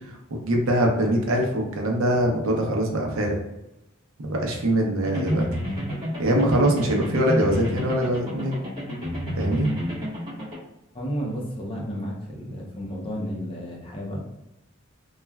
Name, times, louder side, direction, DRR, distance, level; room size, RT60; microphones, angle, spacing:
voice 1, 0.0-3.4 4.2-5.5 6.2-8.6 9.3-9.7, right 1 dB, 85° right, 1 dB, 0.6 m, -23 dB
sound 1, 5.0-10.6, equal, 25° right, 1.0 m, -30 dB
voice 2, 10.9-14.2, equal, 25° left, -2 dB, 0.6 m, -32 dB
3.1 x 2.3 x 2.2 m, 0.92 s
head